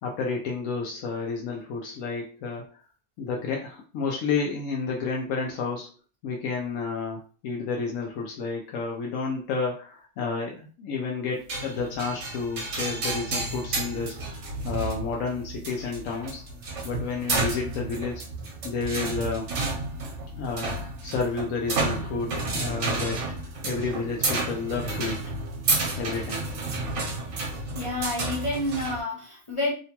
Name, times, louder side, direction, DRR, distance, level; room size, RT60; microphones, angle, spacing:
voice 1, 0.0-2.8 3.2-5.9 6.2-14.1 14.6-16.4 16.8-18.2 18.6-19.5 20.3-25.2 26.0-26.5, left 4 dB, 85° left, -1 dB, 1.0 m, -31 dB
sound 1, 11.5-29.0, right 3 dB, 70° right, 1.0 m, -31 dB
voice 2, 27.7-29.7, left 2 dB, 45° left, -4 dB, 0.4 m, -29 dB
2.9 x 2.2 x 2.8 m, 0.39 s
omnidirectional pair, 1.3 m